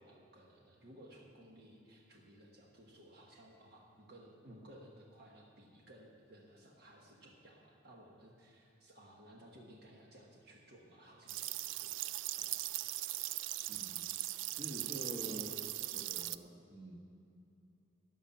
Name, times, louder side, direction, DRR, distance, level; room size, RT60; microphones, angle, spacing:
voice 1, 0.0-12.7, right 1 dB, 55° right, -1 dB, 1.3 m, -58 dB
sound 1, 11.3-16.4, right 15 dB, 75° right, 0.3 m, -40 dB
voice 2, 13.7-14.1 14.6-15.5 15.9-17.0, right 1 dB, 35° right, -1 dB, 1.4 m, -46 dB
13.0 x 5.7 x 8.9 m, 2.9 s
head